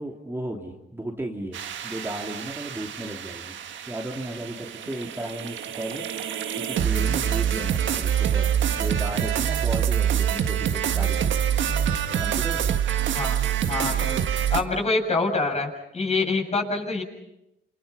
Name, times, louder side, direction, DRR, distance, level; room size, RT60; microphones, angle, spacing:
voice 1, 0.0-3.5 3.9-11.4 12.1-12.6, right 1 dB, 10° right, 0 dB, 3.2 m, -35 dB
sound 1, 1.5-14.6, right 9 dB, 70° right, 1.7 m, -26 dB
voice 2, 13.7-14.2 14.5-17.0, left 3 dB, 35° left, 1 dB, 7.3 m, -26 dB
29.5 x 28.5 x 5.7 m, 0.87 s
cardioid pair, 90°, 20 cm